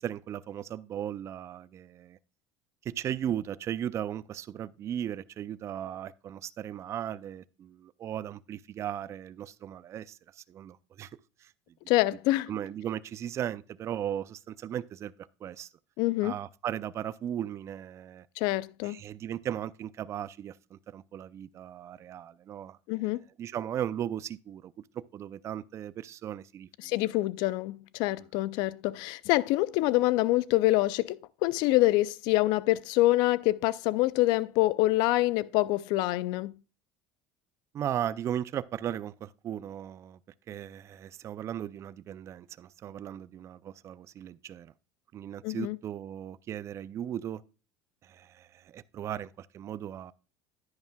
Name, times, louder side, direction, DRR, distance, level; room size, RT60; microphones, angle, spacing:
voice 1, 0.0-2.2 2.8-11.1 11.4-11.5 12.5-15.1 15.4-15.7 16.2-18.3 18.8-22.8 23.4-26.9 37.7-40.2 40.5-44.7 45.1-47.4 48.0-50.1, right 10 dB, 40° right, 0.4 m, -37 dB
voice 2, 11.9-12.5 16.0-16.3 18.4-19.0 22.9-23.2 26.8-36.5 45.4-45.8, left 18 dB, 70° left, 0.4 m, -26 dB
10.5 x 9.6 x 2.3 m
supercardioid pair, 110°, 8 cm